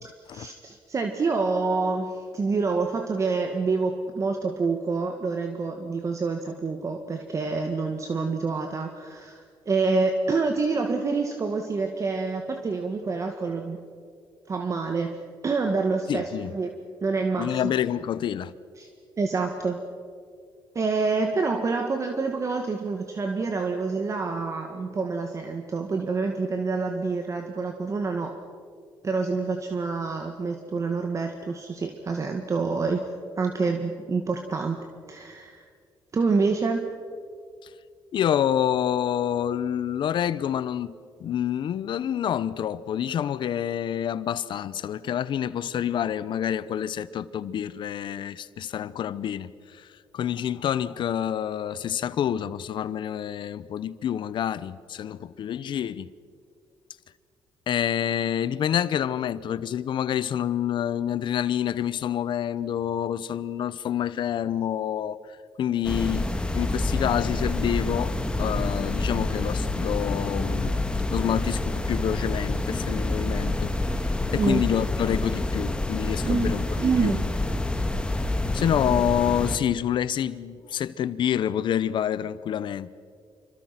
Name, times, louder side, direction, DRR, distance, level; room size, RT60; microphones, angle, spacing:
voice 1, 0.0-13.8 14.5-15.2 15.4-16.7 17.0-17.7 18.8-18.9 19.2-19.8 20.8-28.4 29.0-33.0 33.4-34.8 35.1-35.6 36.1-36.8 74.4-74.6 76.2-76.5 76.8-77.3, right 4 dB, 35° right, 1.9 m, -27 dB
voice 2, 16.1-16.5 17.4-18.5 38.1-40.9 41.2-49.9 50.1-56.1 57.7-65.2 65.6-66.3 66.5-70.8 71.1-73.7 74.1-77.2 78.5-82.9, left 10 dB, 65° left, 0.9 m, -27 dB
sound 1, 65.8-79.6, left 2 dB, 10° left, 2.0 m, -27 dB
27.5 x 24.5 x 6.0 m
cardioid pair, 110°, 9 cm